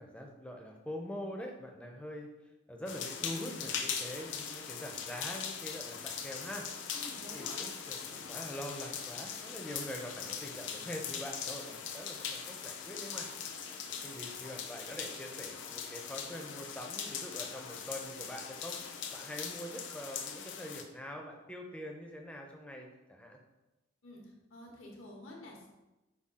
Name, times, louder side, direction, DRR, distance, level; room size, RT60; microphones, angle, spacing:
voice 1, 0.0-2.3 2.7-6.7 7.3-13.3 13.9-23.4, equal, 5° left, 1 dB, 0.4 m, -44 dB
sound 1, 2.9-20.8, left 7 dB, 65° left, 0.4 m, -41 dB
voice 2, 6.9-7.6 24.0-25.7, left 1 dB, 85° left, -1 dB, 1.0 m, -50 dB
5.5 x 2.3 x 3.6 m, 1.0 s
head